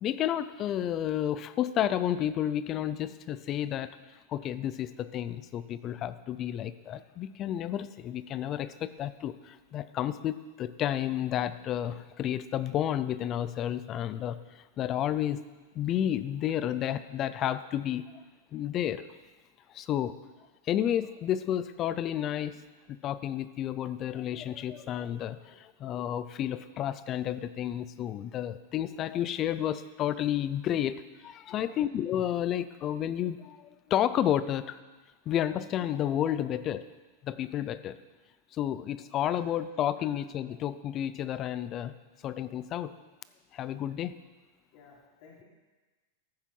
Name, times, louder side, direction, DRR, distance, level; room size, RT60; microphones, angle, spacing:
voice 1, 0.0-3.9 4.3-14.4 14.8-15.4 15.8-18.0 18.5-19.1 19.7-20.2 20.7-22.6 22.9-34.8 35.3-36.8 37.2-38.0 38.5-41.9 42.2-42.9 43.5-44.1, left 11 dB, 25° left, 14 dB, 0.5 m, -31 dB
voice 2, 44.7-45.4, left 5 dB, 50° left, -3 dB, 3.1 m, -55 dB
14.0 x 7.3 x 5.5 m, 1.2 s
supercardioid pair, 155°, 0 cm